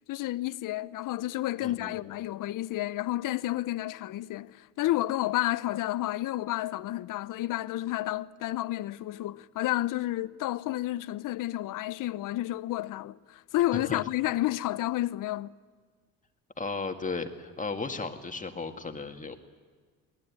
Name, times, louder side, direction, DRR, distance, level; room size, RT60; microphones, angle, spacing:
voice 1, 0.1-15.5, left 15 dB, 60° left, 0.8 m, -31 dB
voice 2, 1.6-1.9 13.7-14.0 16.6-19.4, left 4 dB, 20° left, 2.0 m, -35 dB
21.5 x 19.0 x 9.7 m
supercardioid pair, 80°, 35 cm